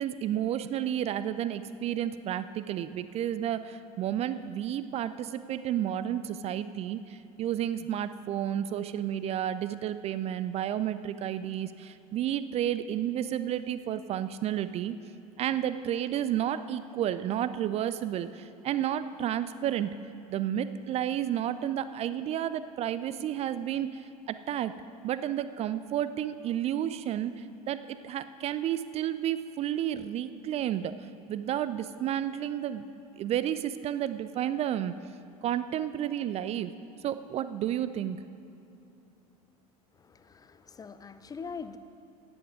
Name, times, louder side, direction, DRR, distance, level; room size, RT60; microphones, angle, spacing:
voice 1, 0.0-15.0 15.4-19.9 20.3-24.7 25.0-30.9 31.3-32.8 33.2-35.0 35.4-36.7 37.0-38.2, right 11 dB, 35° right, 13 dB, 0.4 m, -31 dB
voice 2, 39.9-41.8, left 5 dB, 20° left, 12 dB, 0.5 m, -43 dB
17.5 x 7.9 x 5.0 m, 2.9 s
figure-of-eight pair, 70°, 19 cm